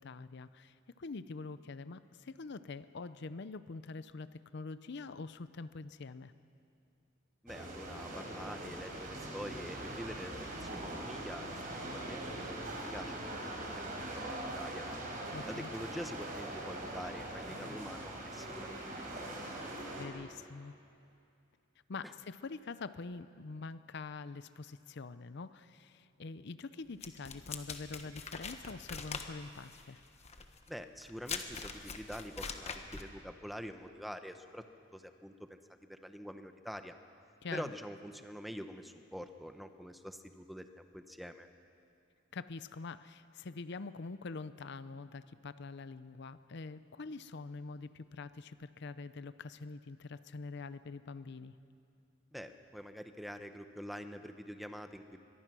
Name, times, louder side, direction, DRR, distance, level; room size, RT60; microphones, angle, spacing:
voice 1, 0.0-6.3 15.3-15.7 19.9-20.7 21.9-30.0 37.4-37.6 42.3-51.5, left 4 dB, 60° left, 14 dB, 0.6 m, -45 dB
voice 2, 7.4-11.5 11.9-12.6 12.9-13.1 13.4-14.9 15.5-18.8 19.1-19.6 22.0-22.1 30.7-34.6 34.9-35.6 35.9-37.0 37.5-40.7 40.9-41.5 52.3-55.2, equal, ahead, 7 dB, 0.9 m, -46 dB
sound 1, 7.5-20.0, right 1 dB, 45° right, 4.2 m, -42 dB
sound 2, 27.0-33.1, left 5 dB, 35° left, 1.3 m, -43 dB
23.5 x 22.0 x 6.2 m, 2.5 s
head